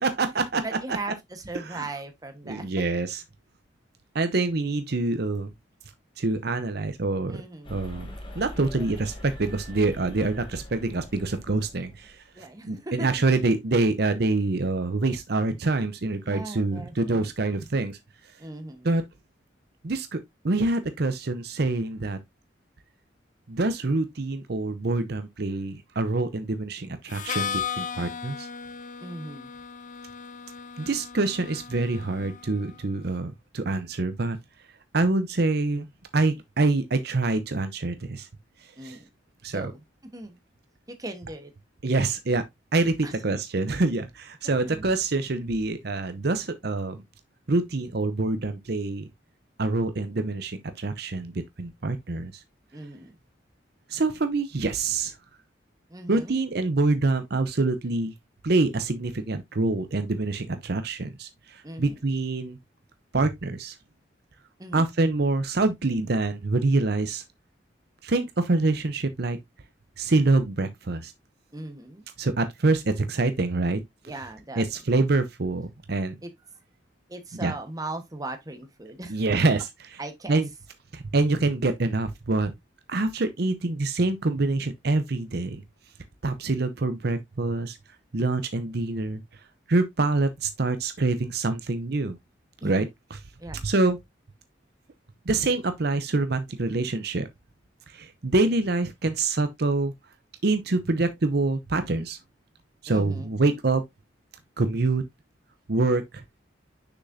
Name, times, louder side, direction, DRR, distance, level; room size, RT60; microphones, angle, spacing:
voice 1, 0.0-0.6 1.7-1.9 2.5-3.2 4.1-5.5 6.2-7.4 7.7-12.1 12.6-18.0 18.8-19.0 19.8-20.2 20.4-22.2 23.5-28.5 30.8-34.4 34.9-35.9 36.1-38.3 38.8-39.0 39.4-39.7 41.8-42.4 42.7-47.0 47.5-49.1 49.6-52.3 53.9-55.1 56.1-58.1 58.4-62.6 63.1-63.7 64.7-67.2 68.0-69.4 70.0-71.1 72.2-73.8 74.6-76.1 77.4-77.5 79.1-79.7 80.3-80.5 80.9-82.5 82.9-85.6 86.2-87.8 88.1-89.2 89.7-92.2 92.6-92.9 93.6-94.0 95.3-97.3 97.9-99.9 100.4-102.2 102.8-103.8 104.6-105.0 105.7-106.2, right 3 dB, 60° right, 0.7 m, -26 dB
voice 2, 0.6-2.7 7.3-7.8 12.4-13.2 16.2-17.3 18.4-18.9 29.0-29.5 38.8-39.1 39.5-39.8 40.1-40.4 41.0-41.5 42.8-43.1 44.4-44.9 52.7-53.2 55.9-56.4 61.6-62.0 64.6-64.9 71.5-72.0 74.0-74.6 76.2-76.3 77.1-79.2 80.0-80.4 92.6-92.9 93.4-93.7 102.9-103.4, right 2 dB, 20° right, 1.2 m, -38 dB
sound 1, 7.6-12.2, left 1 dB, 30° left, 1.7 m, -42 dB
Harmonica, 27.1-32.8, left 7 dB, 45° left, 0.5 m, -36 dB
6.6 x 6.2 x 2.6 m
head